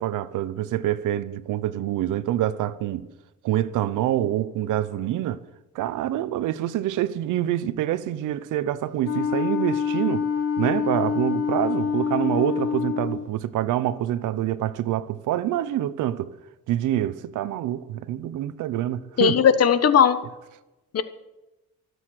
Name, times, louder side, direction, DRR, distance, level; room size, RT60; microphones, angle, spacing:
voice 1, 0.0-3.1 3.4-5.4 5.7-10.3 10.6-16.3 16.7-19.3, right 12 dB, 85° right, 0.9 m, -26 dB
Wind instrument woodwind instrument, 9.0-13.3, left 6 dB, 85° left, 1.5 m, -26 dB
voice 2, 19.2-20.2 20.9-21.0, left 7 dB, 55° left, 1.3 m, -17 dB
24.0 x 8.2 x 6.5 m
cardioid pair, 90°, 30 cm